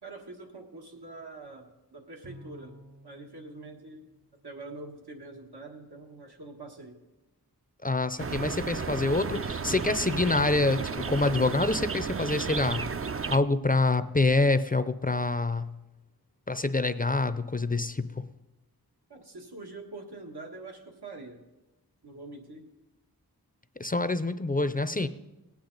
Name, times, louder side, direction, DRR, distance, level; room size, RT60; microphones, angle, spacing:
voice 1, 0.0-2.8 3.0-4.1 4.4-7.0 19.1-21.4 22.0-22.7, right 2 dB, 85° right, 1 dB, 1.6 m, -44 dB
Bowed string instrument, 2.2-4.9, equal, 55° right, 1.3 m, -53 dB
voice 2, 7.8-10.8 11.1-12.9 13.3-15.7 16.5-18.2 23.8-25.1, left 2 dB, 25° left, 12 dB, 0.5 m, -26 dB
sound 1, 8.2-13.4, right 5 dB, 35° right, 0.4 m, -33 dB
18.5 x 8.8 x 3.9 m, 1.1 s
wide cardioid pair, 40°, 38 cm